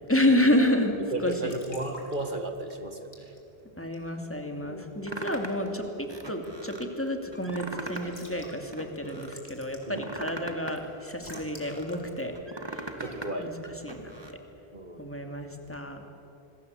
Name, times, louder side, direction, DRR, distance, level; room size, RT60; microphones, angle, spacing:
voice 1, 0.1-0.9 1.2-1.5 3.8-12.3 12.7-12.9 13.4-13.5 13.8-14.4 15.0-16.0, left 1 dB, 10° left, 4 dB, 2.7 m, -29 dB
Raindrop / Drip / Trickle dribble, 1.0-13.5, left 1 dB, 80° left, 4.0 m, -54 dB
voice 2, 1.1-3.3 4.7-4.9 9.9-10.0 13.0-13.5 14.7-15.1, right 2 dB, 45° right, 6 dB, 2.1 m, -35 dB
sound 1, 5.1-5.7 6.1-6.9 7.3-8.2 8.5-9.4 9.8-12.0 12.4-13.3 13.6-14.3, right 2 dB, 20° right, 1.9 m, -40 dB
26.5 x 21.5 x 8.3 m, 2.8 s
omnidirectional pair, 1.1 m